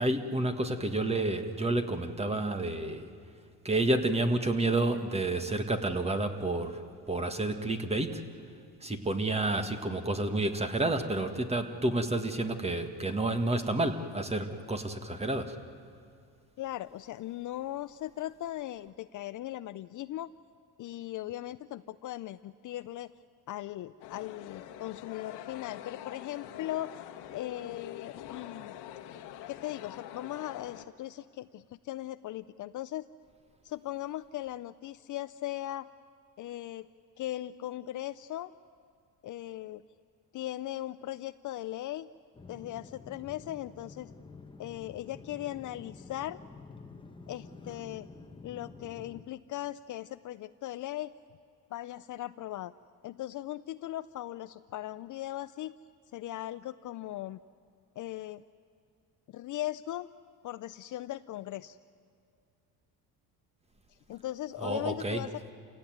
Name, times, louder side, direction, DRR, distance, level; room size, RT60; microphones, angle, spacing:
voice 1, 0.0-3.1 3.6-8.3 8.8-15.6 64.6-65.2, right 2 dB, 15° right, 8 dB, 1.8 m, -30 dB
voice 2, 16.6-20.3 20.8-23.1 23.5-27.0 27.3-28.7 29.5-33.0 33.6-35.9 36.4-36.9 37.2-38.5 39.2-39.8 40.3-42.1 42.5-44.1 44.6-46.4 47.3-48.1 48.4-51.1 51.7-52.7 53.0-55.7 56.1-57.4 58.0-58.4 59.3-60.1 60.4-61.8 64.1-65.5, left 14 dB, 50° left, 13 dB, 0.5 m, -38 dB
sound 1, 24.0-30.9, left 11 dB, 90° left, 1.5 m, -45 dB
sound 2, 42.3-49.2, left 4 dB, 10° left, 1.2 m, -49 dB
28.5 x 17.0 x 9.3 m, 2.4 s
cardioid pair, 120°, 40 cm